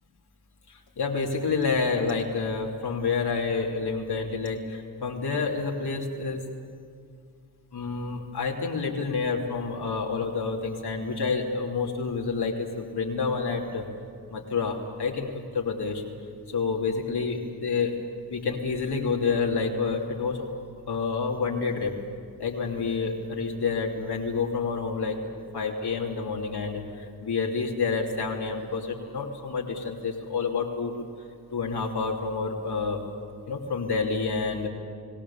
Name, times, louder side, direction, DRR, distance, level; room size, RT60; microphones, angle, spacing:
voice 1, 0.7-6.4 7.7-13.9 14.3-16.0 16.5-18.0 18.3-20.5 20.9-21.9 22.4-25.2 25.5-31.0 31.5-33.0 33.5-34.7, left 4 dB, 65° left, -1 dB, 3.0 m, -28 dB
29.5 x 17.5 x 7.3 m, 2.2 s
supercardioid pair, 40°, 42 cm